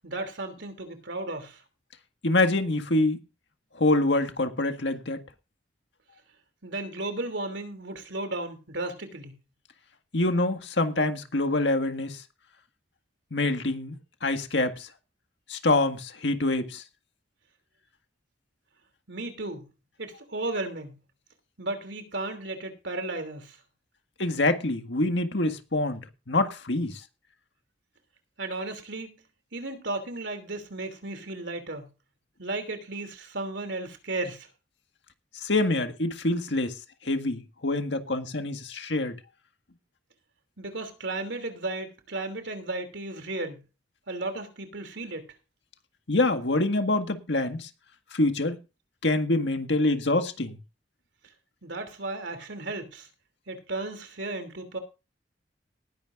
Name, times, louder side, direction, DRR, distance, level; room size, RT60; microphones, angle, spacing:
voice 1, 0.0-1.6 6.6-9.4 19.1-19.7 20.0-21.0 21.6-23.6 28.4-29.2 29.5-31.9 32.4-34.5 40.6-43.6 44.1-45.3 51.6-53.1 53.5-54.8, right 2 dB, 80° right, 2.9 m, -34 dB
voice 2, 2.2-3.2 3.8-5.2 10.1-12.2 13.3-14.9 15.5-16.8 24.2-26.0 26.3-27.0 35.4-36.8 37.1-39.2 46.1-47.7 48.1-48.6 49.0-50.6, left 2 dB, 75° left, 1.8 m, -25 dB
19.5 x 10.5 x 2.5 m
head